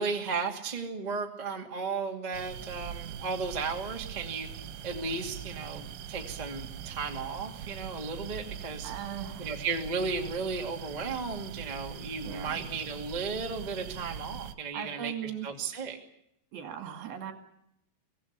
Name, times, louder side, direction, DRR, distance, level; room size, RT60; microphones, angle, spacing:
voice 1, 0.0-4.5 4.8-8.9 9.4-16.0, right 4 dB, 15° right, 2 dB, 1.4 m, -35 dB
sound 1, 2.3-14.6, right 9 dB, 80° right, 3.3 m, -42 dB
voice 2, 8.8-9.5 12.2-12.6 14.7-15.5 16.5-17.3, right 9 dB, 65° right, 6 dB, 3.8 m, -38 dB
24.0 x 17.0 x 8.3 m, 0.80 s
omnidirectional pair, 5.0 m